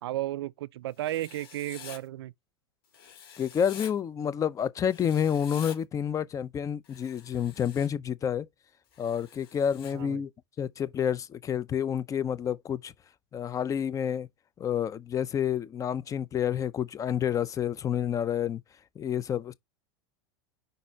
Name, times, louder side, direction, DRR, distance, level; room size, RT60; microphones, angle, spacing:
voice 1, 0.0-2.3 9.9-10.2, right 14 dB, 80° right, 0.4 m, -34 dB
Writing, 1.0-2.0 2.9-3.9 4.9-5.8 6.8-7.9 8.9-9.9, left 7 dB, 65° left, 2.5 m, -47 dB
voice 2, 3.4-8.5 9.0-10.3 10.6-12.9 13.3-14.3 14.6-18.6 19.0-19.5, left 8 dB, 25° left, 0.6 m, -29 dB
5.2 x 4.2 x 4.5 m
hypercardioid pair, 105°, 13 cm